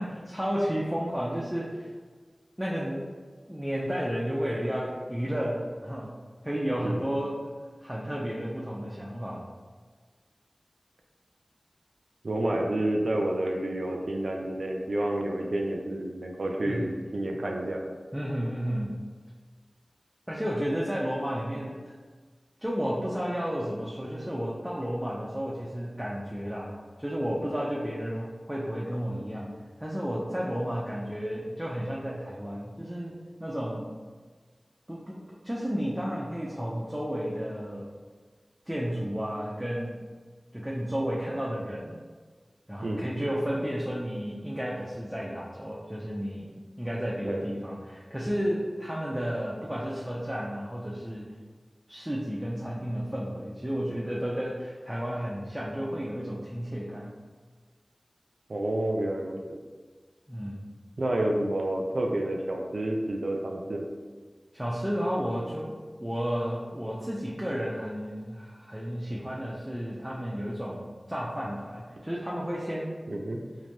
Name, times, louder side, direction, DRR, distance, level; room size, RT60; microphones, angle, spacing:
voice 1, 0.0-1.9 2.6-3.1 3.5-7.5 7.8-9.5 16.6-16.9 18.1-19.0 20.3-21.9 22.6-33.9 34.9-35.2 35.4-37.9 38.7-40.0 40.5-42.0 42.7-51.3 51.9-57.2 60.3-60.7 64.5-72.9, equal, 10° right, -6 dB, 0.5 m, -32 dB
voice 2, 12.2-17.8 42.8-43.1 47.2-47.4 58.5-59.4 61.0-63.9 73.1-73.4, right 1 dB, 80° right, 1 dB, 0.4 m, -29 dB
3.2 x 2.6 x 2.6 m, 1.5 s
wide cardioid pair, 55°, 0 cm